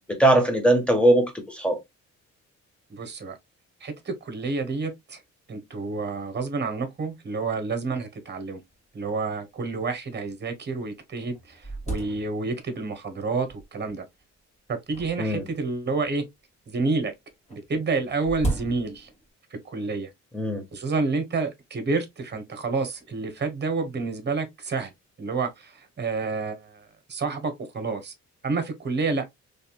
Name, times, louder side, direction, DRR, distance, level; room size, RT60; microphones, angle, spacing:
voice 1, 0.0-1.8 15.2-15.4 20.3-20.6, right 1 dB, 5° left, 1.5 m, -21 dB
voice 2, 2.9-3.4 3.8-5.2 5.5-8.6 8.9-14.0 14.7-16.2 16.7-17.1 17.5-19.1 19.5-20.1 20.7-24.9 25.2-28.1 28.4-29.2, right 4 dB, 35° right, 1.4 m, -29 dB
sound 1, 8.7-8.8 9.0-9.1 9.8-9.9 10.5-10.6 11.0-12.8 13.5-13.9 14.9-16.2 17.5-19.3, right 2 dB, 20° left, 2.4 m, -35 dB
4.2 x 3.4 x 2.3 m
cardioid pair, 90°, 30 cm